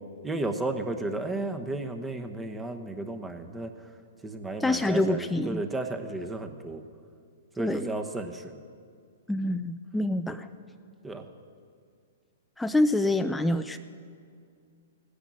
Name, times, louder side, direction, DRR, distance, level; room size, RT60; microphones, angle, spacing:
voice 1, 0.2-3.7 4.2-6.8 7.6-8.5 11.0-11.2, right 2 dB, 10° right, 6 dB, 1.0 m, -33 dB
voice 2, 4.6-5.6 7.6-8.0 9.3-10.5 12.6-13.8, left 1 dB, 5° left, 7 dB, 0.4 m, -26 dB
16.5 x 10.0 x 6.3 m, 2.3 s
hypercardioid pair, 120°, 0 cm